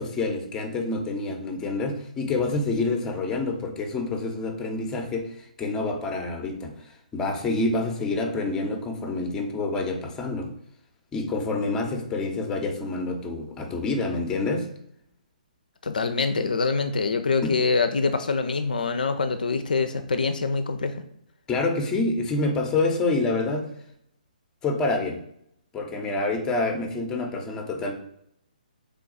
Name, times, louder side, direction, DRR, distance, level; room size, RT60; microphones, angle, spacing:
voice 1, 0.0-10.5 11.1-14.7 21.5-23.7 24.6-25.2 25.7-27.9, left 3 dB, 15° left, 4 dB, 0.6 m, -27 dB
voice 2, 15.8-21.0, left 4 dB, 70° left, 8 dB, 0.4 m, -25 dB
3.5 x 2.3 x 3.9 m, 0.74 s
figure-of-eight pair, 135°, 5 cm